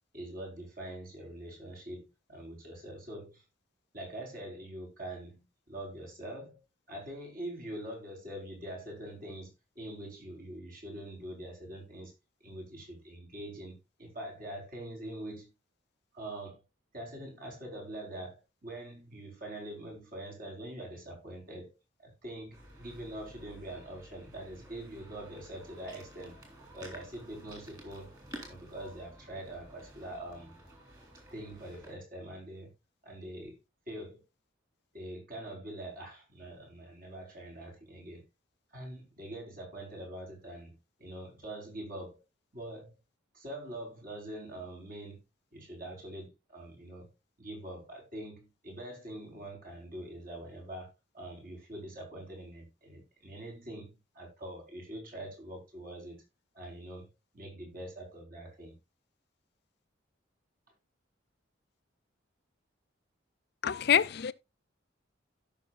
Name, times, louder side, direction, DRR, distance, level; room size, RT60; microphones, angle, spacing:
voice 1, 0.1-3.4 3.9-6.6 6.9-12.1 12.4-15.5 16.1-16.6 16.9-21.7 22.0-26.4 26.7-28.1 28.5-30.5 31.3-32.7 33.0-33.6 33.9-34.2 34.9-38.3 38.7-42.2 42.5-43.0 43.3-45.2 45.5-47.1 47.4-56.2 56.5-57.1 57.3-58.7, right 1 dB, 45° right, 4.4 m, -44 dB
sound 1, 22.5-31.9, right 1 dB, 20° right, 3.5 m, -52 dB
voice 2, 63.6-64.3, left 8 dB, 55° left, 0.5 m, -26 dB
16.5 x 6.0 x 2.4 m
head